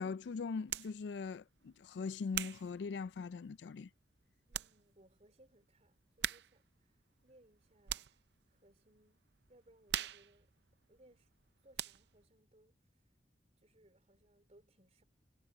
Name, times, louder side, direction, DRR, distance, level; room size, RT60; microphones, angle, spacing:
voice 1, 0.0-3.9, left 5 dB, 80° left, 0.4 m, -41 dB
sound 1, 0.7-1.0 1.6-3.6 4.1-4.2 4.5-4.8 5.1-5.2 6.2-6.7 7.0-8.3 8.7-9.0 9.3-11.4 11.7-12.2, right 11 dB, 70° right, 0.6 m, -42 dB
voice 2, 4.5-8.2 8.5-10.5 10.9-11.3 11.6-12.9 13.6-15.0, right 1 dB, 40° right, 3.9 m, -67 dB
head